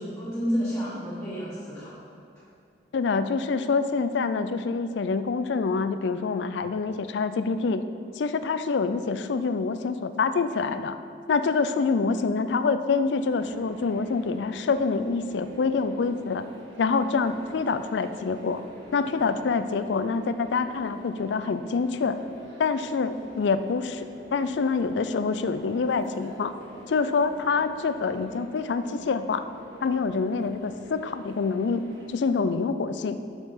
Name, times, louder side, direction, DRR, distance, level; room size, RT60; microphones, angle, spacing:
voice 1, 0.0-1.9 6.6-6.7, equal, 5° left, -13 dB, 1.7 m, -30 dB
voice 2, 2.9-7.8 8.2-11.0 11.3-16.5 16.8-18.6 18.9-22.2 22.6-26.5 26.9-29.4 29.8-31.8 32.1-33.2, left 4 dB, 75° left, 11 dB, 0.4 m, -26 dB
sound 1, 13.3-32.1, right 1 dB, 80° right, 1.5 m, -47 dB
7.2 x 5.6 x 5.5 m, 2.5 s
head